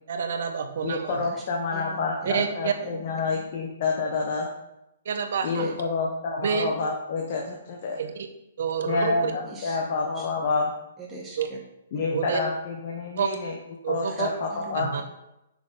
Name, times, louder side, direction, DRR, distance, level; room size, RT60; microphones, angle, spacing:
voice 1, 0.1-1.2 2.2-2.7 5.0-5.7 6.4-6.7 8.0-8.3 8.6-9.3 11.4-11.5 12.1-12.4 13.2-13.3 13.8-14.3 14.7-15.0, right 7 dB, 55° right, 7 dB, 1.1 m, -28 dB
voice 2, 0.8-4.5 5.4-8.0 8.8-10.7 11.9-13.5 13.9-14.9, left 4 dB, 35° left, 0 dB, 1.1 m, -28 dB
voice 3, 1.7-2.5 2.8-3.0 5.5-5.7 9.5-9.8 10.1-10.3 11.0-11.6 14.0-14.2 14.5-15.0, right 1 dB, 10° right, -3 dB, 1.7 m, -42 dB
9.5 x 6.2 x 4.2 m, 0.88 s
hypercardioid pair, 175°, 0 cm